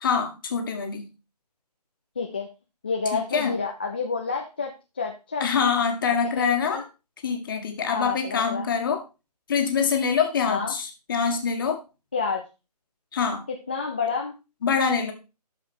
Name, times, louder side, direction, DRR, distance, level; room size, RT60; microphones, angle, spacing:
voice 1, 0.0-1.0 3.1-3.6 5.4-6.8 7.2-9.0 9.5-11.8 13.1-13.4 14.6-15.1, left 6 dB, 30° left, 5 dB, 1.7 m, -25 dB
voice 2, 2.2-2.5 2.8-5.5 6.4-6.8 7.9-8.7 10.5-10.7 12.1-12.4 13.7-14.3, left 4 dB, 15° left, 1 dB, 0.4 m, -29 dB
12.0 x 5.0 x 4.4 m, 0.29 s
figure-of-eight pair, 155°, 21 cm